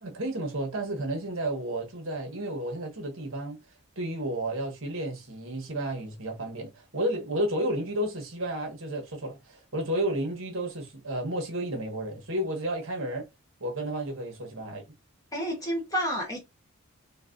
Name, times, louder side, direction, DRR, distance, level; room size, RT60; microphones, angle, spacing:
voice 1, 0.0-3.6 4.0-13.3 13.6-14.9, right 1 dB, 60° right, 1.0 m, -32 dB
voice 2, 15.3-16.4, equal, 15° left, 1.1 m, -30 dB
4.0 x 2.2 x 2.5 m
head